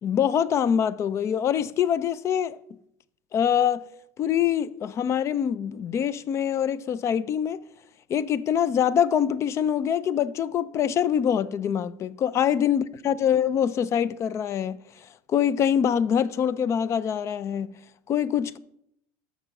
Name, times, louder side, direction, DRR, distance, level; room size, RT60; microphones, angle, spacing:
voice 1, 0.0-2.6 3.3-3.8 4.2-7.6 8.1-14.8 15.3-17.7 18.1-18.6, left 9 dB, 35° left, 0.4 m, -24 dB
6.8 x 6.6 x 6.0 m
supercardioid pair, 110°, 8 cm